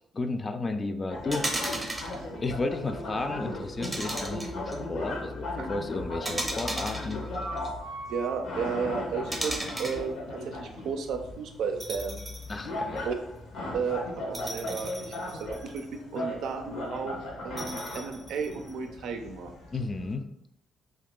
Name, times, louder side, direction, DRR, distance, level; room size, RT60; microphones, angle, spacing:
voice 1, 0.1-2.0 2.4-7.3 12.5-13.1 19.7-20.3, left 3 dB, 30° left, 8 dB, 0.3 m, -33 dB
sound 1, 1.1-20.1, left 1 dB, 75° left, 0.8 m, -37 dB
sound 2, 1.3-2.2 3.8-4.7 6.2-7.7 9.3-10.0 11.8-12.6 13.0-13.1 14.3-15.9 17.6-18.7, right 1 dB, 15° right, 0.6 m, -35 dB
voice 2, 8.1-12.2 13.0-13.2 13.7-17.2 17.4-19.5, right 5 dB, 80° right, 5 dB, 0.4 m, -33 dB
2.8 x 2.3 x 3.6 m, 0.78 s
cardioid pair, 90°, 0 cm